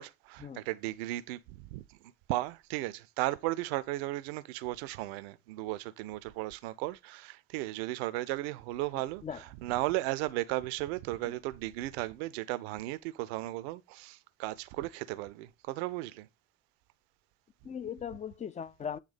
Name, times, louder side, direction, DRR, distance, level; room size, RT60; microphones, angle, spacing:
voice 1, 0.0-2.0 2.3-16.3, right 17 dB, 70° right, 0.6 m, -35 dB
voice 2, 17.6-19.0, left 7 dB, 20° left, 0.5 m, -39 dB
8.1 x 3.3 x 5.0 m
figure-of-eight pair, 55°, 33 cm